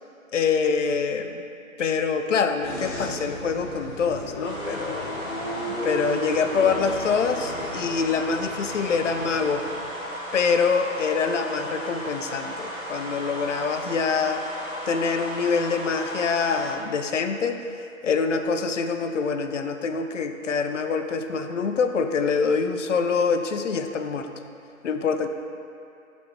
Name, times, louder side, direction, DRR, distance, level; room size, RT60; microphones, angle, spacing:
voice 1, 0.3-1.4 1.8-5.1 5.8-9.7 10.3-14.5 14.9-17.6 18.0-24.3 24.8-25.3, left 5 dB, 60° left, 7 dB, 0.6 m, -25 dB
sound 1, 2.6-9.8, equal, 35° left, 1.4 m, -35 dB
sound 2, 4.4-16.7, equal, 5° right, 0.5 m, -35 dB
11.5 x 4.1 x 3.1 m, 2.5 s
figure-of-eight pair, 145°, 42 cm